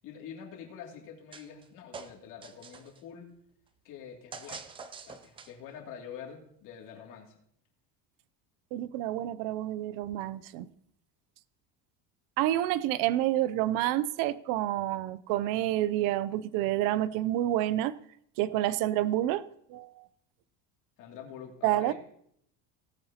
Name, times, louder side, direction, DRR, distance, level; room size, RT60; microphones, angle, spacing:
voice 1, 0.0-3.3 3.8-4.8 5.1-7.3 21.0-21.9, left 8 dB, 55° left, 2.7 m, -46 dB
sound 1, 1.3-1.7 1.9-3.0 4.3-5.7, right 5 dB, 15° right, 0.3 m, -45 dB
voice 2, 8.7-10.7 12.4-18.0 18.4-19.4 19.7-20.1 21.6-21.9, right 13 dB, 60° right, 0.6 m, -28 dB
17.5 x 9.6 x 2.9 m
cardioid pair, 165°, 38 cm